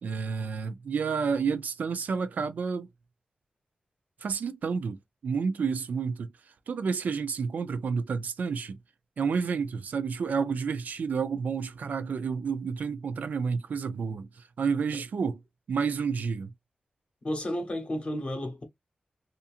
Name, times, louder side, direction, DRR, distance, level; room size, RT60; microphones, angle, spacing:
voice 1, 0.0-2.9 4.2-5.0 5.2-6.3 6.7-8.8 9.2-14.3 14.6-15.4 15.7-16.5, right 5 dB, 80° right, 0.4 m, -30 dB
voice 2, 17.2-18.6, left 1 dB, 40° left, 1.0 m, -32 dB
2.8 x 2.5 x 2.4 m
wide cardioid pair, 105°, 3 cm